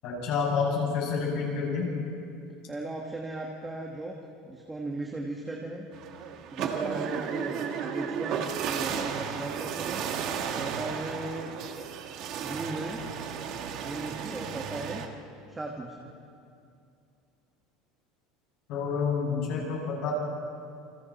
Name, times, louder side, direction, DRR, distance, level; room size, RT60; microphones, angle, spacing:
voice 1, 0.0-1.9 18.7-20.1, left 5 dB, 50° left, -2 dB, 7.0 m, -28 dB
voice 2, 2.7-4.1 4.5-5.9 6.5-7.6 7.9-10.0 10.5-11.5 12.4-13.0 13.8-15.0 15.5-16.1, right 2 dB, 10° right, -1 dB, 1.5 m, -37 dB
sound 1, 5.9-15.1, right 7 dB, 40° right, 1.4 m, -34 dB
28.5 x 26.5 x 4.2 m, 2.5 s
cardioid pair, 175°, 0 cm